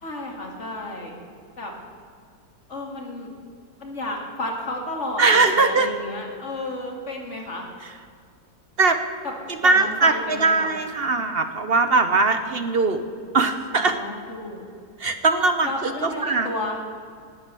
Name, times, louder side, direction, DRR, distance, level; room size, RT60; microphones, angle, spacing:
voice 1, 0.0-1.1 1.6-1.7 2.7-3.3 3.8-7.7 9.6-10.7 13.7-14.6 15.6-16.8, left 1 dB, 45° left, 0 dB, 2.6 m, -32 dB
voice 2, 5.2-5.9 7.8-7.9 8.8-9.0 9.5-13.0 13.3-14.0 15.0-16.5, right 3 dB, 45° right, 8 dB, 0.9 m, -20 dB
18.5 x 8.2 x 6.9 m, 2.2 s
omnidirectional pair, 1.8 m